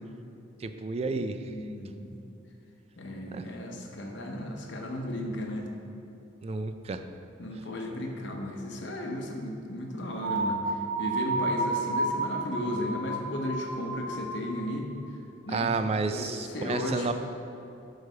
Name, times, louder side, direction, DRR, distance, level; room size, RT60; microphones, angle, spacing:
voice 1, 0.6-1.5 3.3-3.4 6.4-7.0 15.5-17.1, right 4 dB, 30° right, 9 dB, 0.3 m, -31 dB
voice 2, 1.5-2.1 3.0-5.7 7.4-14.9 15.5-15.7 16.1-17.1, left 1 dB, 65° left, 1 dB, 0.9 m, -35 dB
sound 1, 10.2-14.8, right 2 dB, 80° right, 1.0 m, -31 dB
6.3 x 4.8 x 6.7 m, 2.8 s
head